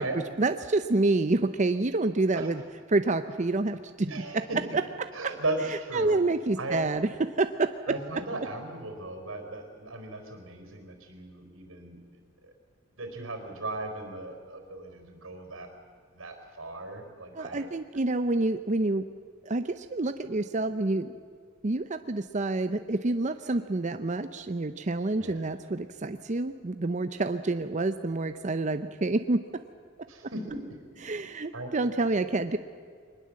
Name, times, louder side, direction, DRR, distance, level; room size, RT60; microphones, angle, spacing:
voice 1, 0.0-2.6 2.9-4.1 4.3-4.4 5.2-5.3 5.9-8.0 17.3-19.1 19.5-21.2 21.6-29.6 31.0-32.6, right 2 dB, 35° right, 10 dB, 0.6 m, -28 dB
voice 2, 4.0-4.8 5.1-6.2 6.6-6.8 7.9-12.0 12.4-12.5 13.0-15.7 16.1-17.7 23.5-23.6 25.2-25.5 30.1-31.2 31.5-31.7, right 2 dB, 90° right, 5 dB, 4.2 m, -37 dB
23.0 x 20.0 x 7.6 m, 2.1 s
head